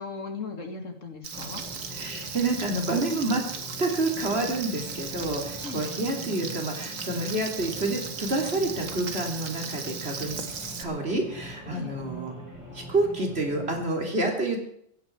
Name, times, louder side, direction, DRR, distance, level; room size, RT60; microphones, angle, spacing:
voice 1, 0.0-1.6 5.6-5.9 11.7-12.1, left 4 dB, 65° left, 4 dB, 2.9 m, -38 dB
Frying (food), 1.2-10.8, right 5 dB, 70° right, 1.9 m, -37 dB
sound 1, 1.3-13.8, right 1 dB, 10° right, 6.3 m, -42 dB
voice 2, 1.9-3.4 3.8-10.4 10.8-12.3 12.7-14.6, right 2 dB, 45° right, 2 dB, 3.8 m, -28 dB
17.0 x 15.5 x 4.8 m, 0.69 s
omnidirectional pair, 1.4 m